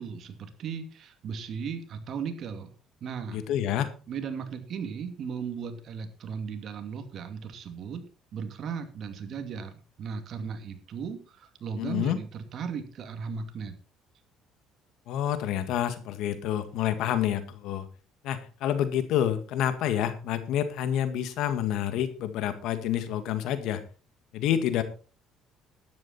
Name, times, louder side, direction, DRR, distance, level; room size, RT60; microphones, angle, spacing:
voice 1, 0.0-2.7 3.0-3.4 4.1-8.0 8.3-13.7, right 6 dB, 55° right, 7 dB, 2.6 m, -36 dB
voice 2, 3.3-3.9 11.8-12.2 15.1-17.9 18.2-23.8 24.3-24.8, left 10 dB, 75° left, 11 dB, 1.9 m, -28 dB
12.5 x 10.5 x 4.3 m, 0.36 s
cardioid pair, 105°, 0 cm